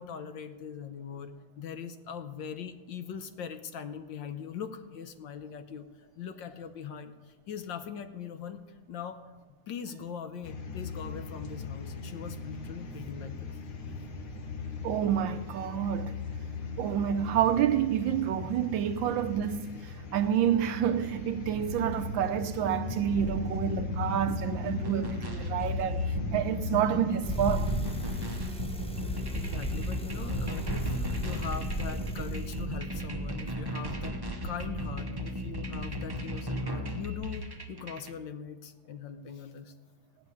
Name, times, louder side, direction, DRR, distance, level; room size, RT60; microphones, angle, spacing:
voice 1, 0.0-8.6 8.9-9.2 9.7-13.5 29.0-39.7, left 7 dB, 70° left, 1.4 m, -41 dB
sound 1, 10.4-28.3, left 4 dB, 85° left, 2.3 m, -38 dB
voice 2, 14.8-16.2 16.8-27.7, right 9 dB, 75° right, 1.3 m, -29 dB
sound 2, 23.2-38.1, equal, 30° right, 0.4 m, -36 dB
Bicycle, 27.2-32.6, equal, 5° left, 0.7 m, -34 dB
15.5 x 6.9 x 9.6 m
omnidirectional pair, 2.2 m